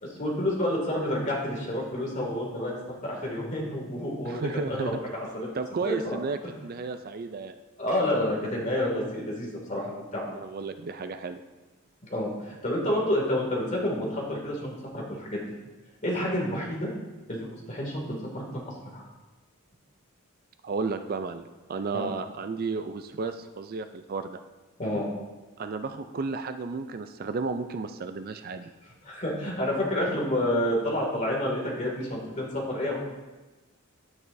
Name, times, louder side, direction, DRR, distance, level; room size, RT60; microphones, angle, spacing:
voice 1, 0.0-5.5 5.8-6.2 7.8-10.3 12.1-15.4 16.0-16.9 17.3-18.0 18.3-19.1 21.9-22.1 24.8-25.1 29.0-33.0, left 1 dB, 35° left, -2 dB, 2.4 m, -29 dB
voice 2, 4.2-5.0 5.5-6.4 6.6-7.5 10.3-11.4 20.6-21.4 21.7-24.4 25.6-28.7, right 4 dB, 45° right, 9 dB, 0.4 m, -33 dB
10.0 x 9.4 x 2.7 m, 1.2 s
head